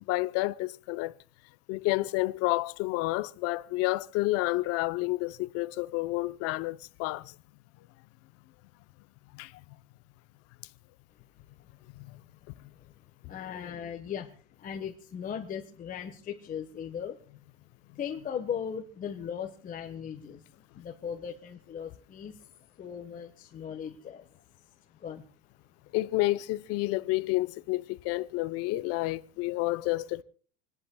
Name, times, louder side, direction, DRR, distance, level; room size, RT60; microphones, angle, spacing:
voice 1, 0.1-1.1 1.7-7.3 9.3-9.5 25.9-30.2, left 19 dB, 45° left, 0.7 m, -30 dB
voice 2, 13.3-17.2 17.9-20.4 20.7-22.4 22.8-24.4 25.0-25.2, left 8 dB, 25° left, 1.2 m, -38 dB
28.0 x 10.5 x 2.3 m
supercardioid pair, 140°, 33 cm